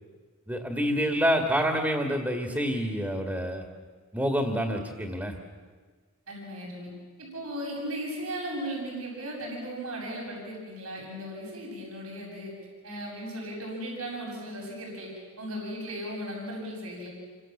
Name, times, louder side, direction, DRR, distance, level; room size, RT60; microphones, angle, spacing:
voice 1, 0.5-3.6 4.1-5.4, equal, 10° right, 4 dB, 2.2 m, -27 dB
voice 2, 6.3-6.9 7.2-12.5 12.8-15.1 15.4-17.1, equal, 80° right, -2 dB, 7.6 m, -36 dB
29.0 x 25.0 x 7.4 m, 1.5 s
head